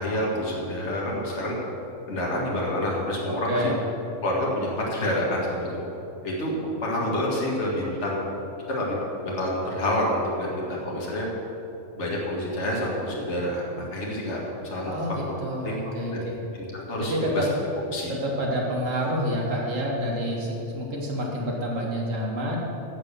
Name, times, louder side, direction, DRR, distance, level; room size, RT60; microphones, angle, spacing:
voice 1, 0.0-1.6 2.1-3.7 4.2-5.8 6.2-8.3 8.7-11.3 12.0-14.4 14.7-14.9 15.6-16.2 16.6-17.5 17.9-18.2, left 1 dB, 60° left, -4 dB, 2.1 m, -28 dB
voice 2, 3.3-3.8 14.9-16.4 17.1-17.5 18.1-22.6, equal, 70° right, -2 dB, 2.3 m, -28 dB
15.5 x 5.2 x 7.0 m, 2.8 s
omnidirectional pair, 1.4 m